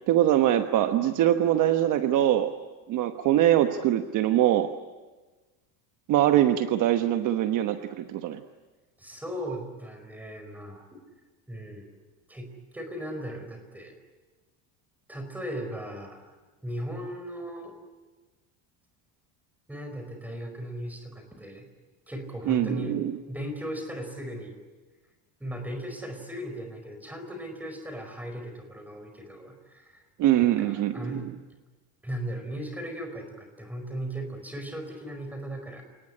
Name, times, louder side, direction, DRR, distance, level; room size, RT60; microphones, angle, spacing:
voice 1, 0.1-2.5 2.9-4.7 6.1-8.4 22.5-23.2 30.2-31.3, right 12 dB, 45° right, 7 dB, 1.2 m, -23 dB
voice 2, 9.0-10.9 11.5-11.9 12.3-14.0 15.1-16.3 16.6-17.7 19.7-21.6 22.1-23.0 23.3-24.6 25.4-30.0 30.4-31.2 32.0-35.8, equal, 5° right, 5 dB, 4.8 m, -37 dB
29.5 x 19.0 x 10.0 m, 1.3 s
cardioid pair, 160°, 42 cm